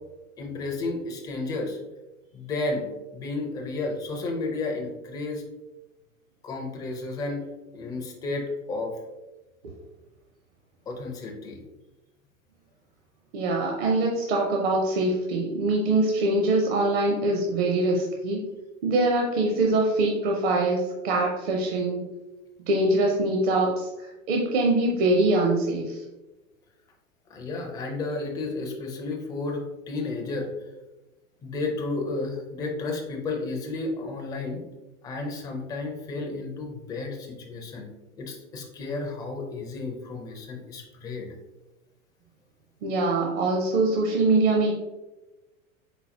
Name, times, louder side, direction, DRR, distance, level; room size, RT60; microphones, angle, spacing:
voice 1, 0.4-1.8 2.3-2.8 3.1-5.4 6.4-7.4 7.7-8.9 10.9-11.6 27.3-30.5 31.4-34.6 35.0-37.9 38.2-41.3, left 3 dB, 10° left, 1 dB, 0.4 m, -32 dB
voice 2, 13.3-18.5 18.8-22.1 22.7-26.0 42.8-44.7, right 2 dB, 50° right, 0 dB, 0.7 m, -23 dB
3.9 x 3.9 x 2.8 m, 1.1 s
figure-of-eight pair, 90°, 40 cm